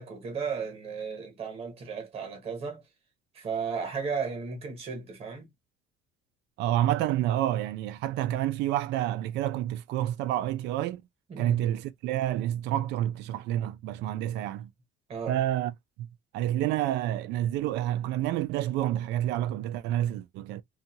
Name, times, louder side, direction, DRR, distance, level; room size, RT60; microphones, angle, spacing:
voice 1, 0.0-2.8 3.3-5.5 11.3-11.7 15.1-15.3, right 5 dB, 30° right, 1.0 m, -35 dB
voice 2, 6.6-11.0 11.4-14.7 15.3-15.7 16.0-16.1 16.3-20.6, right 12 dB, 65° right, 0.4 m, -28 dB
2.6 x 2.4 x 2.7 m
cardioid pair, 175°, 19 cm